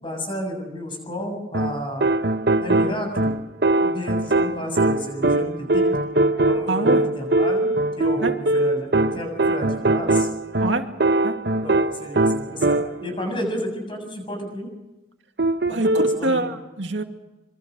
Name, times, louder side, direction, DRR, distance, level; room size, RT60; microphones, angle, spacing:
voice 1, 0.0-2.1 2.6-3.3 3.8-5.8 6.4-10.3 11.6-14.7 15.7-16.6, equal, 25° left, 4 dB, 7.2 m, -31 dB
sound 1, 1.5-13.2 15.4-16.2, right 2 dB, 60° right, 1.0 m, -21 dB
voice 2, 6.7-7.0 8.2-8.3 10.6-10.9 11.2-11.3 15.7-17.0, right 2 dB, 80° right, 5 dB, 2.3 m, -25 dB
26.0 x 24.0 x 6.4 m, 1.0 s
head